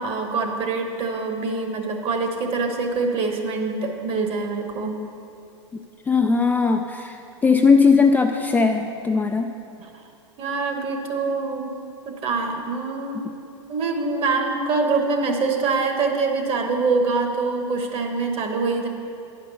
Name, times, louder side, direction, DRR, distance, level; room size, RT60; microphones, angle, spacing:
voice 1, 0.0-4.9 9.8-9.9 10.4-11.7 12.0-13.3 13.7-18.9, right 4 dB, 35° right, 3 dB, 1.2 m, -24 dB
voice 2, 6.1-9.5, left 4 dB, 10° left, 3 dB, 0.3 m, -19 dB
9.9 x 5.1 x 6.8 m, 2.7 s
hypercardioid pair, 105°, 16 cm